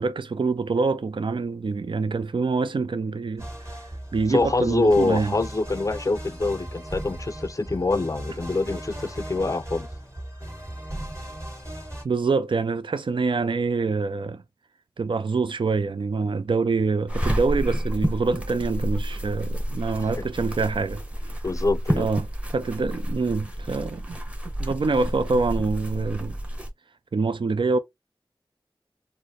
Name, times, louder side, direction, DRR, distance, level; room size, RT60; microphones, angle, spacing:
voice 1, 0.0-3.8 4.1-5.4 12.0-14.4 15.0-21.0 21.9-22.3 22.5-24.2 24.6-26.4 27.1-27.8, right 4 dB, 65° right, 0.4 m, -25 dB
sound 1, 3.4-12.0, right 1 dB, 35° right, 2.1 m, -37 dB
voice 2, 4.3-9.9 20.2-20.3 21.4-22.1, left 3 dB, 35° left, 0.4 m, -25 dB
sound 2, 17.1-26.7, equal, 15° right, 1.0 m, -30 dB
4.1 x 2.1 x 3.0 m
wide cardioid pair, 50°, 9 cm